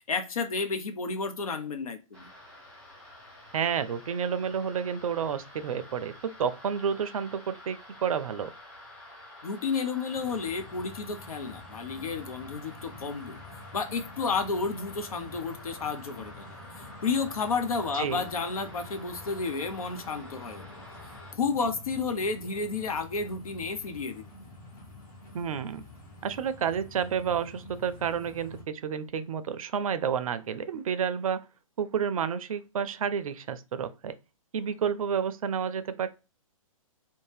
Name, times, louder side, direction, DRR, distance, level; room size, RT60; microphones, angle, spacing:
voice 1, 0.1-2.3 9.4-13.4 13.7-16.5 17.0-20.7 21.3-24.3, left 4 dB, 85° left, 0.6 m, -31 dB
sound 1, 2.1-21.3, left 1 dB, 5° left, 1.0 m, -49 dB
voice 2, 3.5-8.5 17.9-18.2 25.3-25.8 26.2-31.4 31.8-34.1 34.5-36.1, right 7 dB, 75° right, 0.4 m, -30 dB
sound 2, 10.1-28.6, left 2 dB, 45° left, 1.3 m, -48 dB
2.7 x 2.1 x 3.2 m
hypercardioid pair, 130°, 18 cm